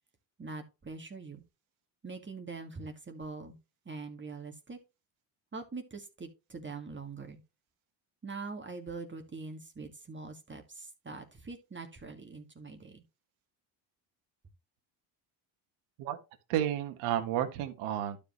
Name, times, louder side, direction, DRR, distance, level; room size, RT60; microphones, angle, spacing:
voice 1, 0.4-1.4 2.0-3.6 3.9-4.8 5.5-7.4 8.2-13.0, right 4 dB, 25° right, 2.0 m, -43 dB
voice 2, 16.5-18.2, right 11 dB, 90° right, 1.7 m, -31 dB
12.0 x 5.1 x 3.1 m
supercardioid pair, 85°, 47 cm